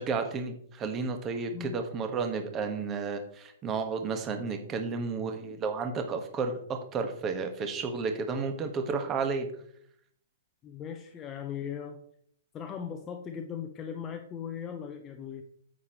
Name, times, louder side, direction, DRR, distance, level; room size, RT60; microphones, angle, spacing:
voice 1, 0.0-9.5, right 4 dB, 20° right, 6 dB, 1.5 m, -32 dB
voice 2, 10.6-12.0 12.5-15.4, left 8 dB, 20° left, 5 dB, 0.8 m, -38 dB
9.4 x 8.5 x 3.1 m, 0.65 s
figure-of-eight pair, 110°, 0 cm